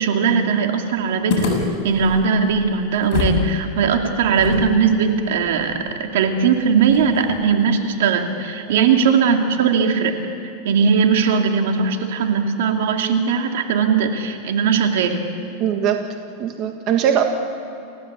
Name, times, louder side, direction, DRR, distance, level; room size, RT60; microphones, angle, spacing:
voice 1, 0.0-1.6 1.8-10.2 10.6-15.2, right 6 dB, 75° right, 4 dB, 2.6 m, -19 dB
sound 1, 1.3-3.5 3.7-3.8 4.4-7.5, left 4 dB, 45° left, 6.3 m, -27 dB
voice 2, 15.6-16.0 16.4-17.2, right 9 dB, 40° right, 4 dB, 1.6 m, -20 dB
29.0 x 16.0 x 8.3 m, 2.7 s
supercardioid pair, 140°, 0 cm